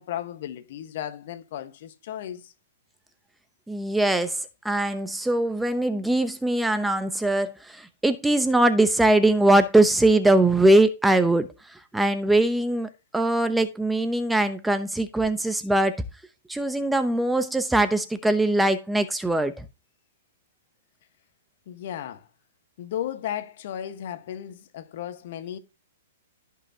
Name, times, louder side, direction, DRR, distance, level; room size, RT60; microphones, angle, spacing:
voice 1, 0.0-2.5 21.7-22.3 22.8-25.6, left 10 dB, 60° left, 1.3 m, -35 dB
voice 2, 3.7-4.4 4.6-11.5 11.9-16.0 16.5-19.6, right 1 dB, 5° right, 0.7 m, -21 dB
15.0 x 5.7 x 2.8 m
hypercardioid pair, 135°, 0 cm